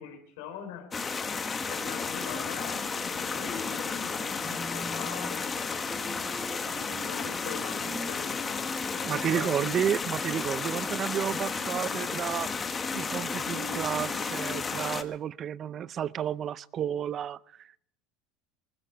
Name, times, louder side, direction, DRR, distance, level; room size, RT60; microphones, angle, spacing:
voice 1, 0.0-1.3 1.7-5.5 6.8-8.6 8.9-9.6, left 7 dB, 80° left, 3.7 m, -42 dB
sound 1, 0.9-15.0, left 5 dB, 25° left, 1.3 m, -33 dB
sound 2, 2.0-8.3, left 7 dB, 40° left, 2.0 m, -49 dB
sound 3, 4.4-9.3 9.6-9.7 9.9-10.0 10.5-11.1 11.4-15.1, equal, 20° right, 2.5 m, -43 dB
voice 2, 9.0-17.8, right 9 dB, 40° right, 0.5 m, -32 dB
20.0 x 14.5 x 4.5 m
supercardioid pair, 110°, 0 cm